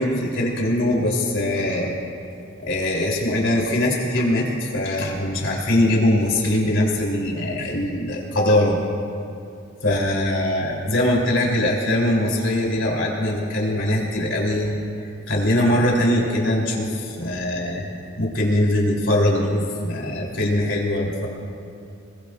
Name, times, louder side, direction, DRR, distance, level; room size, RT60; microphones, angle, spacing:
voice 1, 0.0-2.0 2.6-8.8 9.8-21.3, left 1 dB, 65° left, -2 dB, 3.6 m, -22 dB
26.5 x 21.5 x 2.5 m, 2.5 s
head